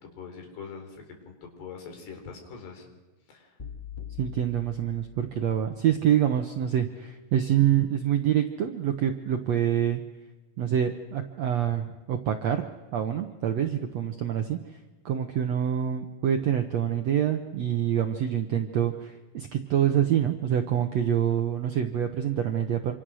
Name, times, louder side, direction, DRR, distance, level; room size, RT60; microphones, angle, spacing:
voice 1, 0.0-2.9 3.3-3.6, left 5 dB, 90° left, 3 dB, 5.8 m, -43 dB
sound 1, 3.6-5.8, left 8 dB, 25° left, 1.1 m, -43 dB
voice 2, 4.2-10.0 10.6-12.7 12.9-14.6 15.0-22.9, right 10 dB, 80° right, 6 dB, 1.5 m, -26 dB
27.0 x 25.5 x 6.3 m, 1.2 s
omnidirectional pair, 4.6 m